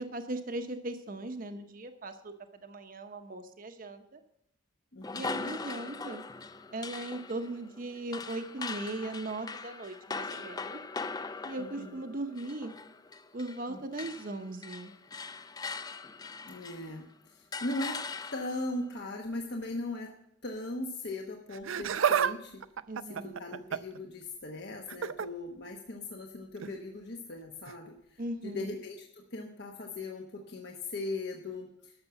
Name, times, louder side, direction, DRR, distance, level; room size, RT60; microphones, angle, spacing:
voice 1, 0.0-2.3 2.6-4.2 5.1-6.2 6.7-10.8 11.4-12.7 13.3-14.9 22.9-23.4 28.2-28.7, right 2 dB, 45° right, 7 dB, 0.8 m, -38 dB
voice 2, 4.9-5.5 11.6-12.0 13.7-14.0 16.4-18.0 18.3-20.1 20.4-22.6 23.2-31.9, left 2 dB, 60° left, 2 dB, 1.1 m, -39 dB
sound 1, 5.0-13.7 13.9-17.0 17.5-18.7, left 4 dB, 20° left, 0.4 m, -41 dB
Laughter, 21.5-22.3 22.6-24.0 24.9-25.3 26.6-26.8 27.7-27.8, right 8 dB, 85° right, 0.5 m, -30 dB
12.5 x 6.8 x 6.9 m, 0.77 s
head